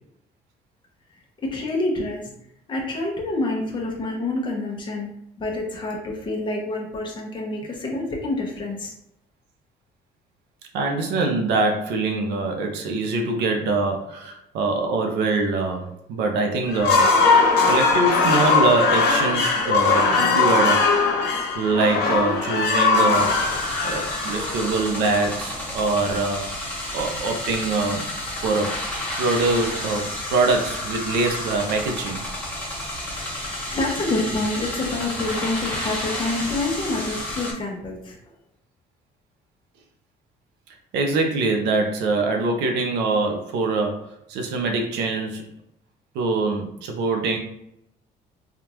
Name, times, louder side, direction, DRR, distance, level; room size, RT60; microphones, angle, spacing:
voice 1, 1.4-2.3 2.7-5.1 5.4-8.9 33.7-38.1, left 2 dB, 30° left, -1 dB, 0.9 m, -27 dB
voice 2, 10.7-17.2 17.7-20.9 21.5-23.4 23.8-26.5 26.9-28.0 28.4-28.8 29.2-32.2 40.9-45.5 46.1-47.4, right 3 dB, 85° right, 3 dB, 0.6 m, -24 dB
sound 1, 16.7-24.8, left 4 dB, 80° left, 0.7 m, -20 dB
sound 2, 23.1-37.5, left 1 dB, 10° left, 1.1 m, -31 dB
3.5 x 2.4 x 2.9 m, 0.74 s
cardioid pair, 110°, 17 cm